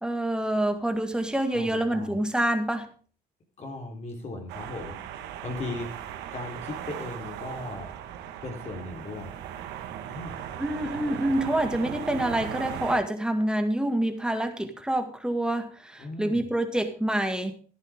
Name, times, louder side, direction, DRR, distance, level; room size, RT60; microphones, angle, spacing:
voice 1, 0.0-2.9 10.6-17.5, right 1 dB, 5° right, 6 dB, 2.0 m, -27 dB
voice 2, 1.5-2.2 3.6-5.0 5.4-7.9 8.4-9.3 10.1-10.4 16.0-16.5, left 2 dB, 40° left, 1 dB, 3.9 m, -37 dB
sound 1, 4.5-13.0, right 10 dB, 85° right, 1.6 m, -37 dB
14.0 x 11.0 x 3.7 m, 0.40 s
cardioid pair, 110°, 17 cm